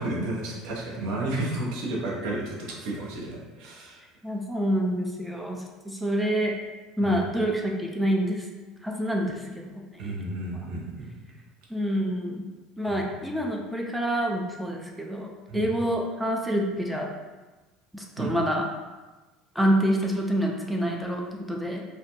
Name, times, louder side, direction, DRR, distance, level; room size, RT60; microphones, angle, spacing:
voice 1, 0.0-4.0 7.0-7.1 10.0-11.1 12.8-13.0 15.5-15.7 18.2-18.3, right 2 dB, 60° right, -3 dB, 0.7 m, -32 dB
voice 2, 4.2-6.5 7.0-8.5 8.8-10.1 11.7-12.5 12.8-17.1 17.9-18.6 19.6-21.8, equal, 5° right, -1 dB, 0.4 m, -27 dB
2.4 x 2.2 x 2.8 m, 1.2 s
hypercardioid pair, 70°, 0 cm